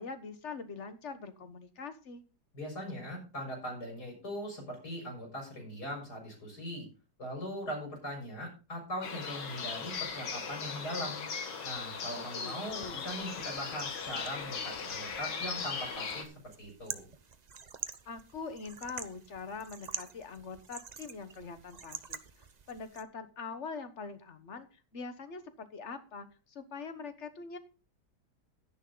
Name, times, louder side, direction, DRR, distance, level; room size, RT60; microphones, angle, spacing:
voice 1, 0.0-2.2 12.2-13.0 18.1-27.6, left 4 dB, 45° left, 10 dB, 1.4 m, -43 dB
voice 2, 2.5-6.9 7.2-11.2 11.6-16.3 16.6-17.1, equal, 65° left, 1 dB, 5.4 m, -40 dB
sound 1, 9.0-16.2, left 5 dB, 85° left, 2.3 m, -38 dB
sound 2, 12.6-23.0, right 5 dB, 45° right, 0.5 m, -47 dB
12.0 x 10.0 x 3.9 m, 0.34 s
omnidirectional pair, 1.9 m